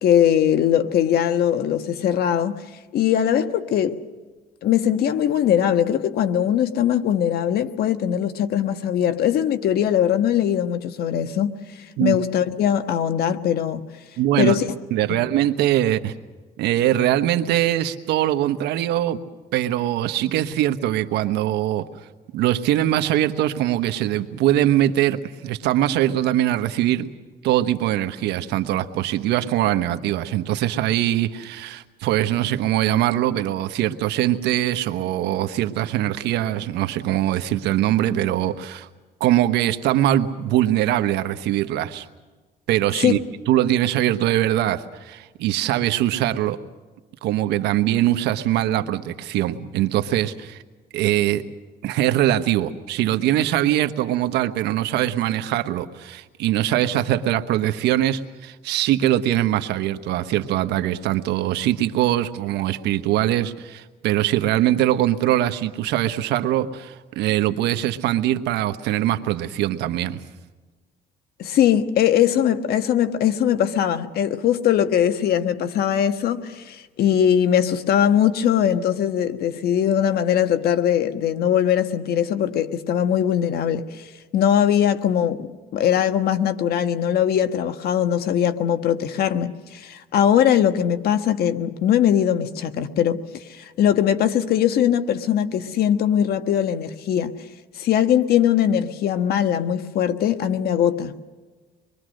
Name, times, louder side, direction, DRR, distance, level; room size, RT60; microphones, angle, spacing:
voice 1, 0.0-2.6 2.9-4.0 4.6-13.8 14.4-14.7 15.1-15.2 43.0-43.2 71.4-97.5 97.7-101.2, left 9 dB, 65° left, 1.4 m, -21 dB
voice 2, 14.2-14.6 14.9-16.1 16.6-19.2 19.5-21.9 22.3-27.1 27.4-38.9 39.2-42.1 42.7-43.2 43.5-46.6 47.2-50.6 50.9-51.5 51.8-70.2, right 13 dB, 85° right, 1.2 m, -22 dB
26.0 x 22.5 x 6.5 m
cardioid pair, 110°, 17 cm